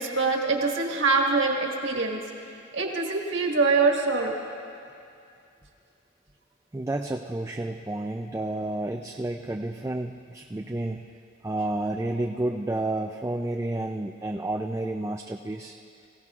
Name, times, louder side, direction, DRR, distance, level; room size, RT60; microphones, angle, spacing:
voice 1, 0.0-2.2 2.7-4.4, right 3 dB, 60° right, 0 dB, 1.7 m, -24 dB
voice 2, 6.7-11.1 11.4-15.7, right 2 dB, 15° right, 3 dB, 0.3 m, -30 dB
24.5 x 16.0 x 2.4 m, 2.5 s
head